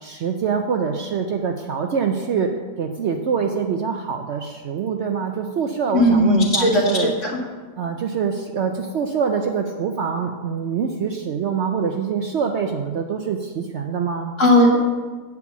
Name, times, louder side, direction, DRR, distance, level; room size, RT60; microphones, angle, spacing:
voice 1, 0.0-7.1 7.8-14.3, right 6 dB, 65° right, 3 dB, 0.7 m, -25 dB
voice 2, 5.9-7.3 14.4-14.8, left 1 dB, 55° left, -2 dB, 2.1 m, -16 dB
8.5 x 4.7 x 7.1 m, 1.4 s
omnidirectional pair, 1.6 m